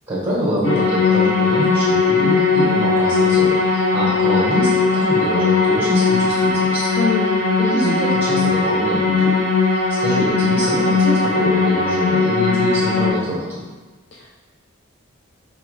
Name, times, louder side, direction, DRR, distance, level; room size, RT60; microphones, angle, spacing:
voice 1, 0.1-6.9 7.6-9.5 10.0-13.6, equal, 10° right, -8 dB, 1.1 m, -24 dB
sound 1, 0.6-13.1, left 4 dB, 80° left, 0.9 m, -18 dB
voice 2, 6.9-7.4 14.1-14.3, left 5 dB, 55° left, -3 dB, 0.4 m, -23 dB
4.6 x 2.1 x 3.2 m, 1.2 s
head